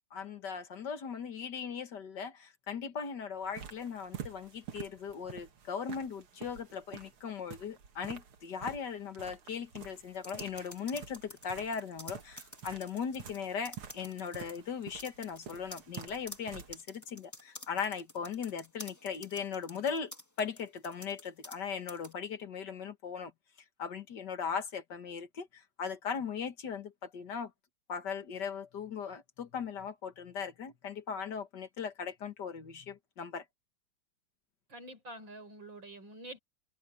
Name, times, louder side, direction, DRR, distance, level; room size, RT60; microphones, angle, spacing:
voice 1, 0.1-23.3 23.8-27.5 27.9-33.4, left 6 dB, 55° left, 2.0 m, -38 dB
sound 1, 3.4-16.8, right 8 dB, 75° right, 2.6 m, -49 dB
sound 2, 10.1-13.4 13.6-14.6 15.0-21.6 21.9-22.1, left 1 dB, 10° left, 1.5 m, -49 dB
voice 2, 34.7-36.4, right 1 dB, 60° right, 6.0 m, -47 dB
omnidirectional pair, 2.4 m